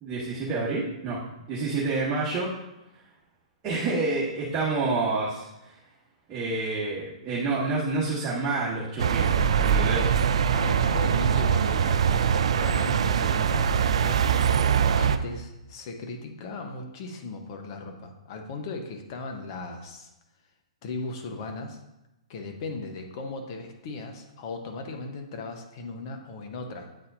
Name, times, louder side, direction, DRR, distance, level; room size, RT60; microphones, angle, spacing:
voice 1, 0.0-1.2 1.5-2.5 3.6-5.7 6.3-10.1, right 3 dB, 25° right, -8 dB, 1.5 m, -28 dB
sound 1, 9.0-15.2, right 7 dB, 65° right, 0.3 m, -23 dB
voice 2, 10.5-14.2 15.0-20.1 20.8-21.8 22.3-26.9, left 3 dB, 45° left, 4 dB, 1.0 m, -37 dB
8.6 x 4.2 x 2.6 m, 0.94 s
hypercardioid pair, 120°, 3 cm